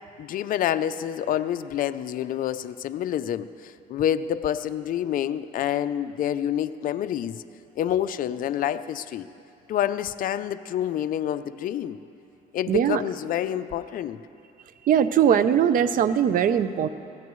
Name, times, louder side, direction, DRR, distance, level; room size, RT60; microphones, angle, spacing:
voice 1, 0.2-7.4 7.8-9.3 9.7-12.0 12.5-14.2, left 10 dB, 55° left, 11 dB, 0.5 m, -27 dB
voice 2, 12.7-13.0 14.9-16.9, right 9 dB, 55° right, 13 dB, 0.7 m, -20 dB
24.5 x 16.5 x 3.1 m, 2.7 s
cardioid pair, 110°, 17 cm